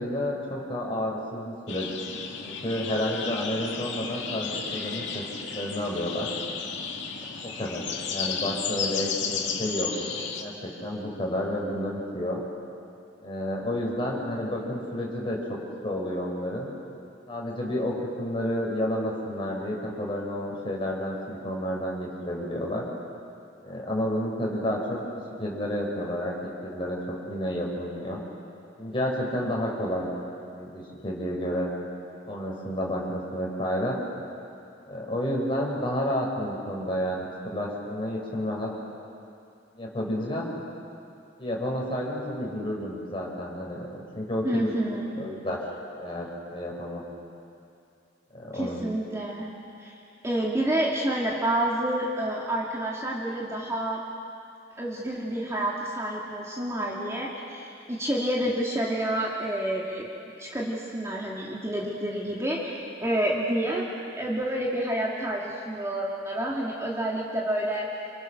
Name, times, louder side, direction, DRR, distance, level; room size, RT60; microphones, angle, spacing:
voice 1, 0.0-1.8 2.4-5.2 5.5-6.3 7.4-7.8 8.1-9.9 10.4-12.4 13.2-15.6 15.8-16.7 17.3-22.8 23.6-25.0 25.4-26.3 26.6-28.2 28.8-30.1 30.5-31.7 32.3-34.0 34.8-38.7 39.7-40.5 41.4-44.7 45.2-45.6 46.0-47.0 48.3-48.9, equal, 30° left, -3 dB, 5.9 m, -30 dB
sound 1, 1.7-10.4, left 6 dB, 70° left, 2.5 m, -33 dB
voice 2, 44.4-45.2 48.5-49.5 49.8-50.0 50.2-54.0 54.8-60.1 60.4-63.8 64.1-67.9, right 1 dB, 15° right, -4 dB, 2.5 m, -29 dB
29.0 x 28.0 x 6.7 m, 2.6 s
head